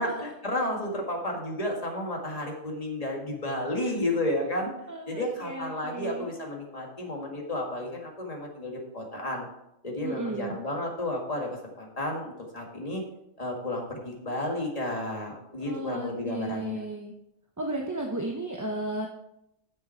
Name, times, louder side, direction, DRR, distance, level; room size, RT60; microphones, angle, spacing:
voice 1, 0.0-4.7 5.1-9.5 9.8-13.0 13.4-16.8, left 1 dB, 30° left, 0 dB, 1.9 m, -32 dB
voice 2, 4.9-6.3 10.0-10.6 15.6-17.1 17.6-19.1, right 1 dB, 20° right, 1 dB, 0.7 m, -34 dB
9.7 x 7.3 x 4.4 m, 0.82 s
omnidirectional pair, 1.2 m